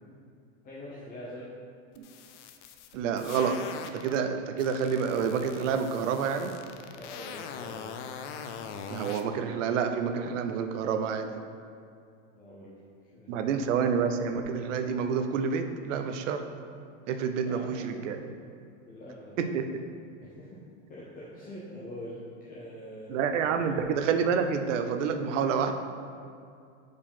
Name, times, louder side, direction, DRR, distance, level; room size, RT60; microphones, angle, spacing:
voice 1, 0.6-1.5 7.0-7.9 12.3-12.8 13.1-13.7 17.4-18.0 18.9-19.5 20.2-20.6 20.9-23.8, left 1 dB, 25° left, -6 dB, 0.8 m, -44 dB
sound 1, 2.0-4.2 4.6-9.2, left 7 dB, 70° left, 0.6 m, -42 dB
voice 2, 2.9-3.6 3.9-6.5 8.9-11.4 13.3-16.4 17.1-18.2 19.4-19.7 23.1-25.7, right 6 dB, 75° right, 7 dB, 0.7 m, -28 dB
4.8 x 4.7 x 5.5 m, 2.5 s
supercardioid pair, 155°, 38 cm